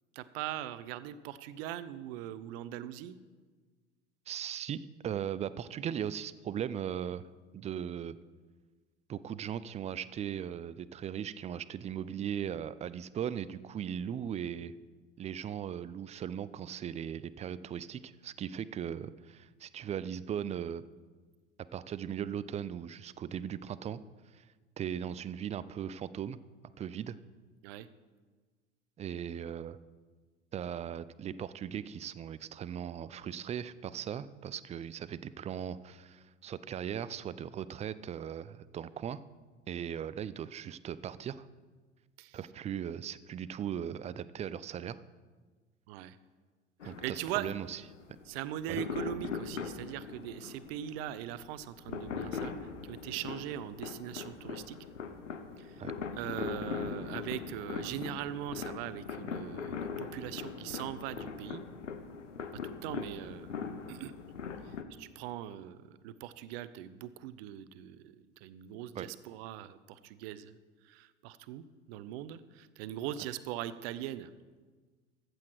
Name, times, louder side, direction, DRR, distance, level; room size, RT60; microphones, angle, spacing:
voice 1, 0.1-3.2 27.6-27.9 42.2-42.5 45.9-46.2 46.8-47.5 48.2-54.8 55.6-55.8 56.2-61.6 62.6-63.5 63.9-64.1 64.6-70.5 70.8-74.3, right 12 dB, 55° right, 15 dB, 0.7 m, -41 dB
voice 2, 4.3-7.2 7.5-8.2 9.1-14.7 15.2-20.8 21.7-24.0 24.3-24.4 24.8-26.4 26.8-27.2 29.0-29.8 30.5-39.2 39.7-41.5 42.3-45.0 46.8-47.8 48.7-48.8 55.8-55.9 68.9-69.1, right 9 dB, 20° right, 17 dB, 0.4 m, -38 dB
sound 1, 46.8-64.8, left 6 dB, 85° left, 0.9 m, -41 dB
14.0 x 8.0 x 4.6 m, 1.4 s
figure-of-eight pair, 75°, 36 cm